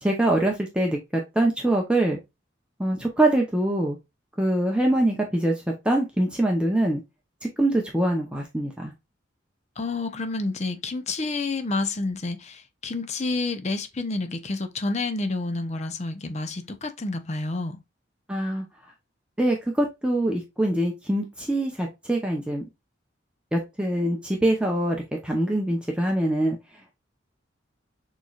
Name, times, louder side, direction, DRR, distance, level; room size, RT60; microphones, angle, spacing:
voice 1, 0.0-2.2 2.8-4.0 4.4-7.0 7.6-8.9 18.3-18.6 19.4-22.6 23.5-26.6, right 1 dB, 5° right, 0.7 m, -24 dB
voice 2, 9.8-17.8, left 3 dB, 35° left, 0.6 m, -29 dB
6.7 x 3.1 x 2.3 m
head